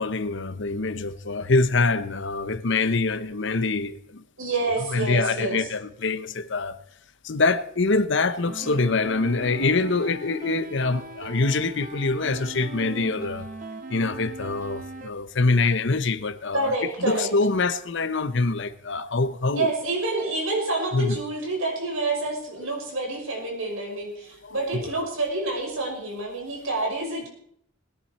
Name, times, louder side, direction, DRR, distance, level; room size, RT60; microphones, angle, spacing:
voice 1, 0.0-4.2 4.6-6.8 7.2-13.5 13.9-19.8 20.9-21.2 22.6-22.7 24.4-25.1, left 3 dB, 60° left, 0.9 m, -25 dB
voice 2, 4.4-5.7 16.5-17.3 19.5-27.3, right 2 dB, 80° right, 5.7 m, -28 dB
sound 1, 8.5-15.1, right 2 dB, 40° right, 1.2 m, -39 dB
20.5 x 10.5 x 4.3 m
head